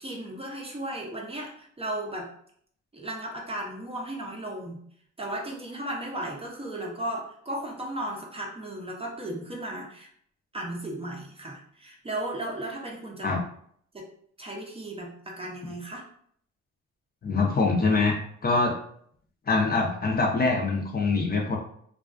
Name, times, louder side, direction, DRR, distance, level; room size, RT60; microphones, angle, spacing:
voice 1, 0.0-2.3 2.9-4.8 5.2-10.1 10.5-13.3 13.9-14.1 14.4-16.0, right 1 dB, 20° right, -1 dB, 0.5 m, -35 dB
voice 2, 17.2-18.8 19.5-21.6, left 3 dB, 30° left, 0 dB, 0.5 m, -24 dB
2.3 x 2.3 x 2.4 m, 0.63 s
cardioid pair, 90°, 30 cm